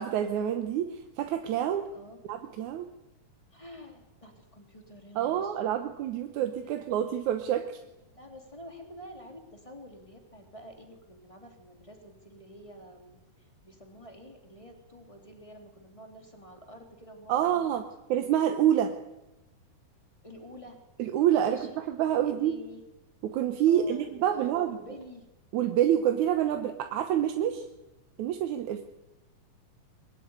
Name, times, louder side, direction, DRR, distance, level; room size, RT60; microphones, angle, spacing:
voice 1, 0.0-1.9 2.3-2.9 5.2-7.8 17.3-17.8 18.1-19.0 21.0-22.5 23.2-24.8 25.5-27.7 28.2-28.8, right 10 dB, 70° right, 6 dB, 2.2 m, -27 dB
voice 2, 1.9-2.2 3.5-5.8 6.4-6.8 8.1-17.7 20.2-20.8 21.4-21.8 22.2-22.8 23.7-25.3, equal, 10° left, 3 dB, 2.8 m, -49 dB
22.5 x 14.5 x 9.7 m, 0.97 s
omnidirectional pair, 4.0 m